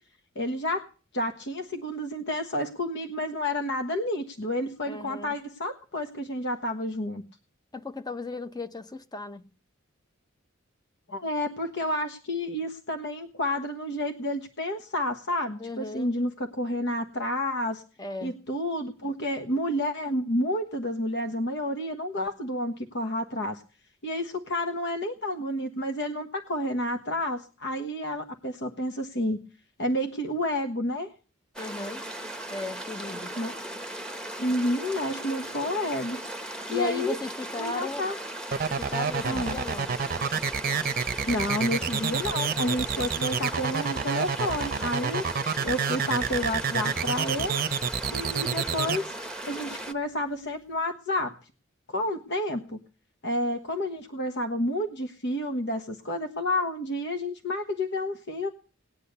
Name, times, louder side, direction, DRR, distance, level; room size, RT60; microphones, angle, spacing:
voice 1, 0.3-0.9 1.1-7.2 11.1-17.8 18.2-23.6 24.0-29.4 29.8-31.1 33.4-33.6 34.4-36.2 36.7-37.2 37.6-38.2 39.2-39.6 41.3-45.2 45.6-47.6 48.1-49.1 49.5-51.4 51.9-52.8 53.2-58.5, left 1 dB, 60° left, 1.3 m, -30 dB
voice 2, 4.9-5.4 7.7-9.5 15.6-16.2 18.0-18.4 31.6-32.0 32.5-33.3 36.7-38.1 38.7-40.0, left 3 dB, 20° left, 0.9 m, -36 dB
sound 1, 31.5-49.9, right 1 dB, 5° left, 1.3 m, -38 dB
sound 2, 38.5-49.0, right 6 dB, 45° right, 0.7 m, -28 dB
19.0 x 10.0 x 6.8 m
head